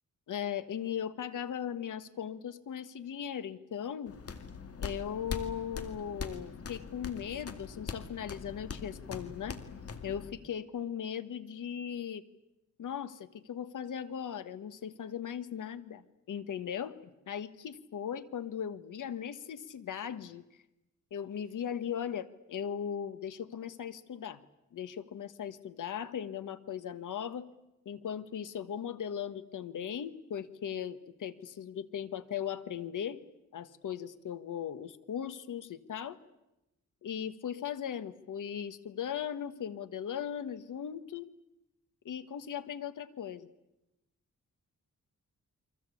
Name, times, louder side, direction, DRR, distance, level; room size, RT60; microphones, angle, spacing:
voice 1, 0.3-4.1 4.8-9.6 10.0-12.2 12.8-17.0 17.3-20.4 21.1-24.4 24.7-27.5 27.8-33.2 33.5-36.2 37.0-41.3 42.0-43.5, left 8 dB, 90° left, 12 dB, 1.5 m, -38 dB
sound 1, 4.1-10.3, left 5 dB, 50° left, 2.1 m, -42 dB
29.5 x 23.5 x 8.5 m, 0.94 s
wide cardioid pair, 140°, 30 cm